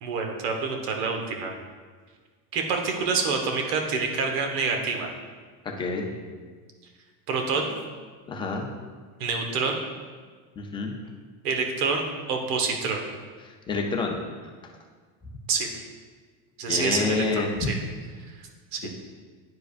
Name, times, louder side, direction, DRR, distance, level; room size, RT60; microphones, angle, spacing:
voice 1, 0.0-1.5 2.5-5.1 7.3-7.7 9.2-9.8 11.4-13.0 15.5-15.7 16.6-17.7 18.7-18.9, right 4 dB, 80° right, 3 dB, 1.3 m, -27 dB
voice 2, 5.6-6.1 8.3-8.7 10.6-10.9 13.4-14.2 16.7-17.6 18.8-18.9, left 3 dB, 10° left, 1 dB, 0.3 m, -28 dB
10.0 x 4.8 x 2.4 m, 1.5 s
supercardioid pair, 135°, 45 cm